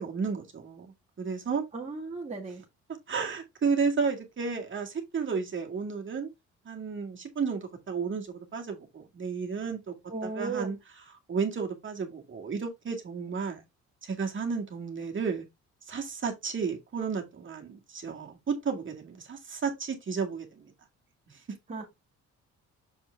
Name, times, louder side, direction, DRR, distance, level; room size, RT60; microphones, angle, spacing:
voice 1, 0.0-1.7 3.1-6.3 6.7-9.9 10.2-10.8 11.3-13.6 14.0-15.5 15.9-20.7 21.5-21.6, right 5 dB, 40° right, 2.1 m, -32 dB
voice 2, 1.7-2.6 10.1-10.7 21.7-21.8, right 4 dB, 25° right, 1.7 m, -35 dB
7.1 x 4.5 x 3.3 m
cardioid pair, 90°, 30 cm